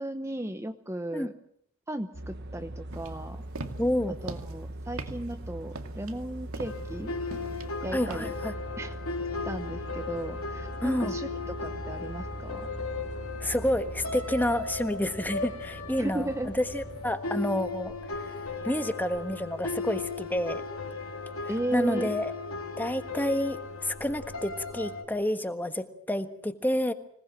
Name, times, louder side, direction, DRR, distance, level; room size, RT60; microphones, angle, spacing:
voice 1, 0.0-1.3 1.9-3.4 4.2-7.1 7.8-8.3 8.8-9.0 9.4-11.3 11.6-12.7 16.0-16.5 21.5-22.2, right 1 dB, 15° right, 7 dB, 1.0 m, -35 dB
sound 1, 2.1-17.2, right 1 dB, 50° right, 1.1 m, -41 dB
sound 2, 2.9-8.5, right 2 dB, 75° right, 2.4 m, -42 dB
voice 2, 3.8-4.2 7.9-8.5 10.8-11.2 13.4-17.9 18.6-20.6 21.7-22.3 22.8-26.9, left 1 dB, 10° left, 8 dB, 1.4 m, -29 dB
sound 3, 6.6-25.1, left 3 dB, 85° left, 3.4 m, -37 dB
25.5 x 19.0 x 7.5 m, 0.69 s
head